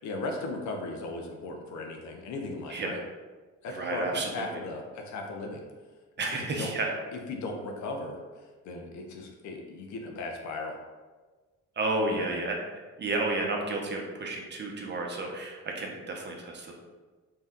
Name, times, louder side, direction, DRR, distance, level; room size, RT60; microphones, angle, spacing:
voice 1, 0.0-3.0 3.6-5.6 6.5-6.7 7.3-8.2 8.6-10.7 12.1-12.4, left 2 dB, 70° left, 2 dB, 0.6 m, -37 dB
voice 2, 3.7-4.6 6.2-6.9 11.8-12.6 13.0-16.7, right 2 dB, 35° right, 0 dB, 0.6 m, -31 dB
2.7 x 2.2 x 3.5 m, 1.3 s
cardioid pair, 90°, 30 cm